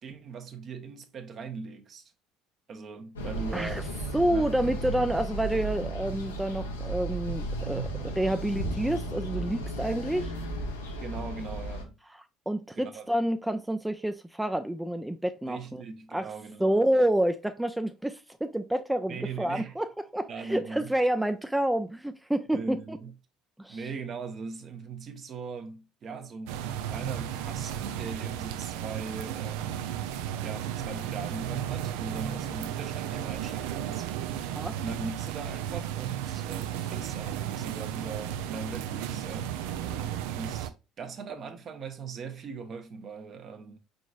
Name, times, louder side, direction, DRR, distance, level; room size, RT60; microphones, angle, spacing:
voice 1, 0.0-2.0 2.7-3.9 4.3-4.5 11.0-11.9 12.8-13.1 15.5-17.0 19.1-19.7 20.3-20.9 22.5-23.1 23.7-30.1 30.4-34.4 34.8-39.6 40.3-43.8, right 4 dB, 45° right, 0.9 m, -40 dB
sound 1, 3.2-11.8, right 2 dB, 85° left, 0.8 m, -34 dB
voice 2, 4.1-10.3 12.5-15.8 16.1-16.3 16.6-23.0 23.6-23.8 34.4-34.7 39.8-40.2, right 1 dB, 5° right, 0.4 m, -29 dB
sound 2, 26.5-40.7, right 10 dB, 70° right, 0.4 m, -34 dB
4.9 x 3.9 x 2.4 m
hypercardioid pair, 60°, 0 cm